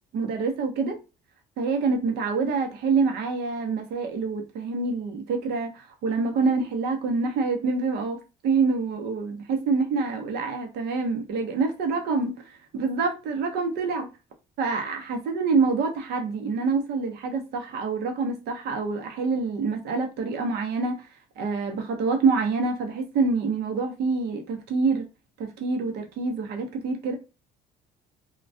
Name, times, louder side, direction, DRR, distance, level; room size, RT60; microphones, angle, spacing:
voice 1, 0.1-1.0 1.6-8.2 8.4-12.3 12.7-14.1 14.6-21.0 21.4-25.0 25.6-27.2, right 4 dB, 75° right, 0.7 m, -26 dB
2.2 x 2.1 x 2.6 m
cardioid pair, 110°, 17 cm